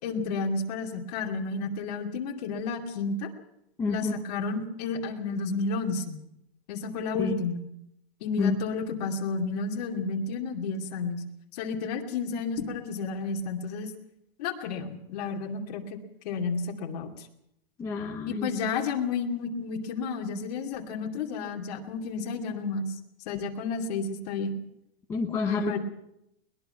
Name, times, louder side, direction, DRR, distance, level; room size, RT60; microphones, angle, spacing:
voice 1, 0.0-3.3 3.9-6.2 6.7-7.6 8.2-11.2 11.5-13.9 14.4-16.0 16.2-17.3 18.3-22.9 23.3-24.6 25.5-25.8, left 4 dB, 40° left, 1 dB, 2.7 m, -31 dB
voice 2, 3.8-4.1 7.2-7.5 8.4-8.5 17.8-18.5 25.1-25.8, left 4 dB, 10° left, 0 dB, 0.8 m, -28 dB
22.0 x 20.5 x 5.8 m, 0.82 s
supercardioid pair, 180°, 31 cm